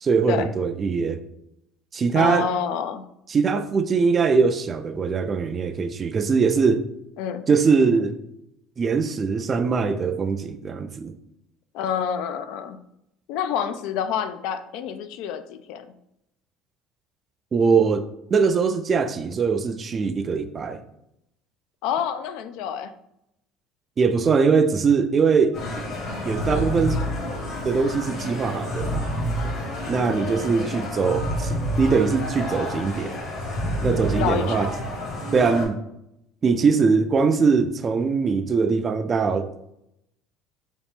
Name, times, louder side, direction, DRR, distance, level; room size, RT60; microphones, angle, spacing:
voice 1, 0.0-1.2 1.9-2.5 3.3-6.8 7.5-8.2 8.8-11.1 17.5-20.8 24.0-25.6 26.2-27.0 27.6-29.1 29.9-33.2 33.8-34.7 35.3-35.7 36.4-39.5, right 5 dB, 30° right, 0.3 m, -22 dB
voice 2, 2.1-3.1 7.2-7.5 11.7-12.8 13.3-15.9 21.8-22.9 26.5-26.8 29.9-30.8 34.2-34.7, left 8 dB, 75° left, 0.3 m, -28 dB
sound 1, 25.5-35.6, equal, 55° left, 1.2 m, -29 dB
3.9 x 2.4 x 3.5 m
cardioid pair, 120°, 0 cm